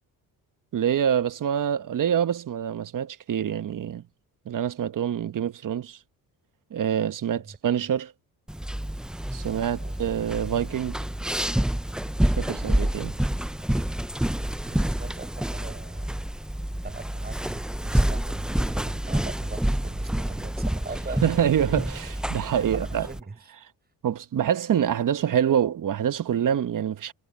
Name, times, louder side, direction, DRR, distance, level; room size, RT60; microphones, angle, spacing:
voice 1, 0.7-4.0 4.4-6.0 6.7-8.1 9.3-10.9 12.4-13.2 21.2-23.1 24.0-27.1, right 9 dB, 60° right, 1.2 m, -26 dB
voice 2, 7.3-7.9 9.4-10.1 14.6-16.1 16.8-21.7 22.8-23.4, right 3 dB, 25° right, 5.9 m, -41 dB
sound 1, 8.5-23.2, right 1 dB, ahead, 0.4 m, -28 dB
cardioid pair, 85°, 37 cm